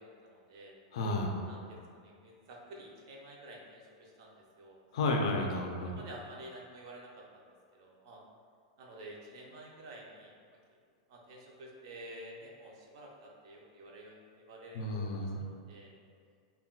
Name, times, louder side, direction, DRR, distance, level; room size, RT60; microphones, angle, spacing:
voice 1, 0.0-0.8 1.5-4.8 5.8-7.4 7.7-8.2 8.8-10.3 11.1-15.9, right 1 dB, 45° right, -1 dB, 0.4 m, -50 dB
voice 2, 0.9-1.4 4.9-5.9 14.7-15.4, left 2 dB, 60° left, 2 dB, 0.3 m, -32 dB
2.2 x 2.2 x 3.7 m, 2.1 s
supercardioid pair, 175°, 4 cm